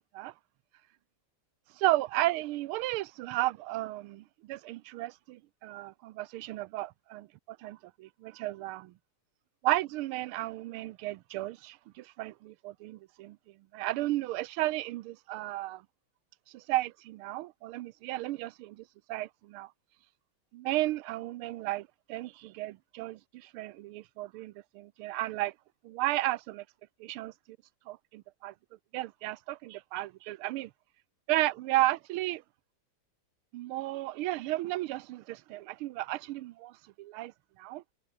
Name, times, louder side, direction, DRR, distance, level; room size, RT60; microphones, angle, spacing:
voice 1, 1.8-8.9 9.6-13.4 13.7-15.8 16.5-19.7 20.5-25.5 25.8-26.6 27.0-27.6 27.9-28.5 28.9-30.7 31.3-32.4 33.5-37.8, right 17 dB, 85° right, 1.5 m, -34 dB
omnidirectional pair, 2.3 m